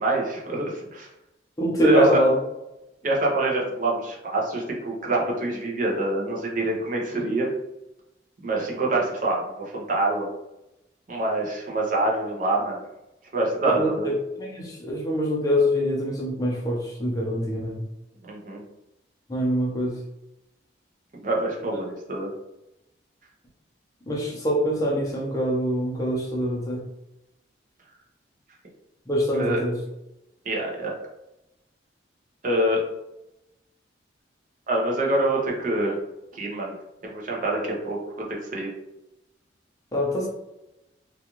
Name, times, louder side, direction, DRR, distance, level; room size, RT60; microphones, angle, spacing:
voice 1, 0.0-1.1 1.8-2.2 3.0-7.5 8.4-10.3 11.1-12.8 13.3-14.1 18.3-18.6 21.1-22.3 29.3-29.6 30.5-30.9 32.4-32.8 34.7-36.0 36.3-36.7 37.0-38.7, right 2 dB, 45° right, -2 dB, 0.6 m, -25 dB
voice 2, 1.6-2.4 13.7-17.8 19.3-20.0 24.1-26.8 29.1-29.8 39.9-40.3, equal, 20° left, -3 dB, 0.6 m, -24 dB
2.4 x 2.3 x 2.9 m, 0.92 s
head